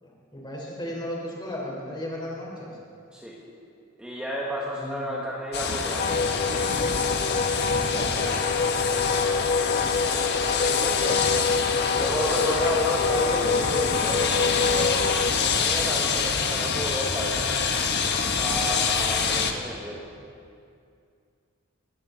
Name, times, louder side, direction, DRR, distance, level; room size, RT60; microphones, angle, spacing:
voice 1, 0.0-2.7 4.7-5.1 7.9-8.3, left 1 dB, 20° left, -3 dB, 4.1 m, -35 dB
voice 2, 4.0-6.8 10.4-11.5 11.9-17.5 18.4-20.0, equal, 5° right, -5 dB, 1.7 m, -32 dB
sound 1, 5.5-19.5, left 5 dB, 55° left, 1.3 m, -26 dB
Wind instrument woodwind instrument, 6.0-15.3, left 4 dB, 40° left, 0.4 m, -27 dB
22.5 x 15.0 x 4.0 m, 2.4 s
head